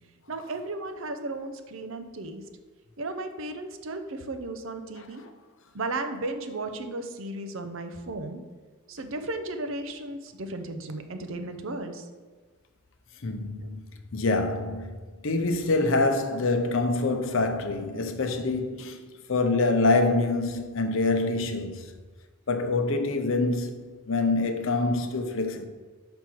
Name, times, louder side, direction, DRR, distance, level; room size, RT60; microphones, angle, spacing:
voice 1, 0.3-2.4 3.0-5.2 5.7-8.4 8.9-12.0 13.6-13.7, right 2 dB, 60° right, 0.6 m, -35 dB
voice 2, 13.2-13.8 14.1-19.0 19.3-21.9 22.5-25.7, left 3 dB, 65° left, 0.7 m, -26 dB
5.2 x 4.5 x 6.0 m
head